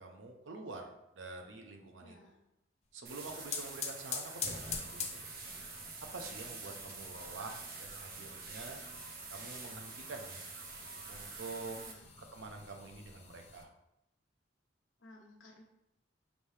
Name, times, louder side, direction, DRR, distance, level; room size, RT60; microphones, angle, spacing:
voice 1, 0.0-2.2 2.9-5.3 6.1-8.8 9.3-10.4 11.1-11.8 12.3-13.7, right 3 dB, 85° right, 3 dB, 0.7 m, -47 dB
voice 2, 2.0-2.4 11.8-12.1 15.0-15.6, left 1 dB, 85° left, 0 dB, 0.9 m, -57 dB
sound 1, 3.0-13.6, left 5 dB, 35° left, 0.5 m, -46 dB
sound 2, 3.1-11.9, right 4 dB, 50° right, 0.7 m, -47 dB
5.1 x 3.3 x 2.7 m, 0.85 s
head